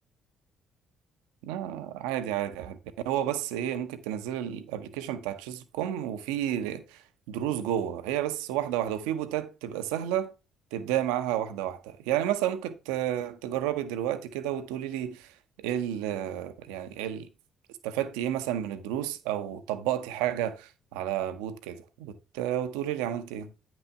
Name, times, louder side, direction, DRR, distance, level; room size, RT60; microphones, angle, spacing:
voice 1, 1.4-2.8 3.0-7.0 7.3-10.3 10.7-15.3 15.6-17.3 17.8-23.5, right 11 dB, 65° right, 0.8 m, -31 dB
9.6 x 6.1 x 3.4 m
figure-of-eight pair, 45°, 0 cm